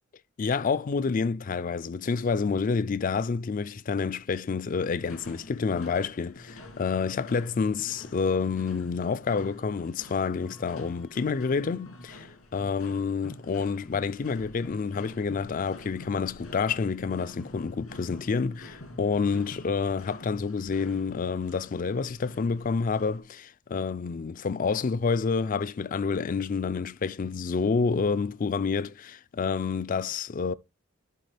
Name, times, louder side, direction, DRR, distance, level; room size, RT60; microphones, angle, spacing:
voice 1, 0.4-12.3 12.5-30.5, left 5 dB, 40° left, 0.4 m, -28 dB
sound 1, 5.0-23.2, left 1 dB, 90° left, 2.4 m, -47 dB
12.0 x 4.2 x 3.3 m
head